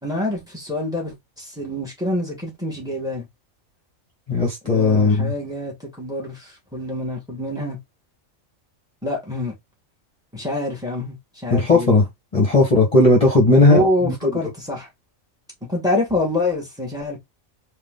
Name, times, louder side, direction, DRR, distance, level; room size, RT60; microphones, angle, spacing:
voice 1, 0.0-3.3 4.6-7.8 9.0-9.5 10.3-11.9 13.6-14.9 15.7-17.2, left 1 dB, 5° right, 2.2 m, -26 dB
voice 2, 4.3-5.3 11.5-12.1 12.3-14.1, left 2 dB, 25° left, 1.5 m, -16 dB
4.7 x 2.9 x 3.8 m
omnidirectional pair, 1.4 m